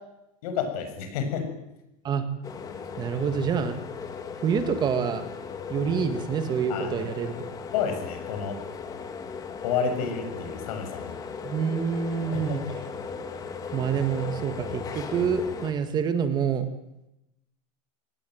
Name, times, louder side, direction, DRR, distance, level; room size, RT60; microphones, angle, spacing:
voice 1, 0.4-1.4 6.7-7.1 7.7-8.6 9.6-11.2 12.3-12.6, left 6 dB, 70° left, 6 dB, 7.2 m, -30 dB
sound 1, 2.4-15.7, left 6 dB, 20° left, 1.9 m, -37 dB
voice 2, 3.0-3.8 4.4-5.2 5.7-7.3 11.4-12.6 13.7-16.6, right 7 dB, 20° right, 9 dB, 1.7 m, -27 dB
25.0 x 18.5 x 9.4 m, 0.89 s
supercardioid pair, 180°, 20 cm